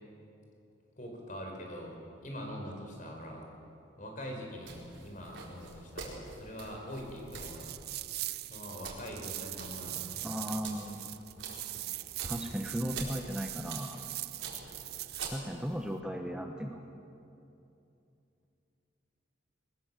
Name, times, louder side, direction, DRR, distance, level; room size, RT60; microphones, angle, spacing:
voice 1, 1.0-3.5 4.0-7.7 8.5-10.2, equal, 40° left, 1 dB, 4.6 m, -43 dB
sound 1, 4.6-15.8, right 4 dB, 85° right, 4.3 m, -46 dB
sound 2, 7.3-15.4, right 16 dB, 55° right, 0.5 m, -41 dB
voice 2, 10.2-11.1 12.2-14.0 15.3-16.8, equal, 5° right, 2 dB, 1.0 m, -36 dB
22.0 x 20.0 x 7.5 m, 2.7 s
head